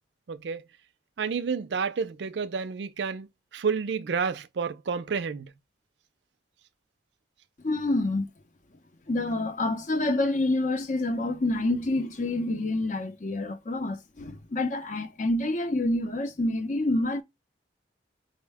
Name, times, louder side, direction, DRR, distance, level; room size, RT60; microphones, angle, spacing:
voice 1, 0.3-0.6 1.2-5.5, right 5 dB, 75° right, 0.4 m, -30 dB
voice 2, 7.6-8.3 9.1-17.2, left 2 dB, 45° left, 0.6 m, -27 dB
5.4 x 2.1 x 3.4 m
head